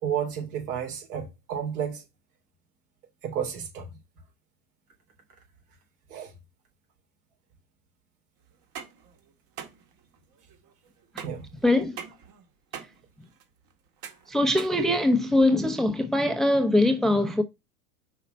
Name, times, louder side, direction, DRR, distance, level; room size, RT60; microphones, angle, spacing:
voice 1, 0.0-2.0 3.2-3.9 6.1-6.3 11.2-11.5, right 8 dB, 70° right, 3.4 m, -31 dB
sound 1, 8.5-15.5, right 8 dB, 45° right, 1.9 m, -44 dB
voice 2, 11.6-12.0 12.7-12.9 14.3-17.4, left 1 dB, ahead, 0.8 m, -22 dB
5.6 x 4.1 x 5.3 m
hypercardioid pair, 95°, 47 cm